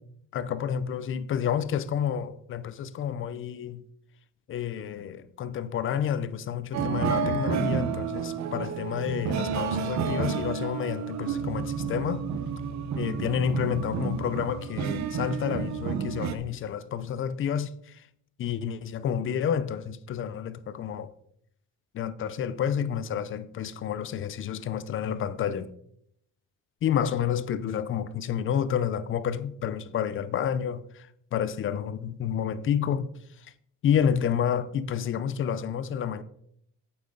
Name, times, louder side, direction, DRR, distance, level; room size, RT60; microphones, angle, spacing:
voice 1, 0.3-3.8 4.5-12.2 12.9-17.7 18.4-21.1 21.9-25.7 26.8-30.8 31.3-33.1 33.8-36.2, left 8 dB, 40° left, 0.4 m, -29 dB
sound 1, 6.7-16.4, right 6 dB, 55° right, 0.7 m, -30 dB
8.7 x 7.7 x 3.7 m
cardioid pair, 175°, 33 cm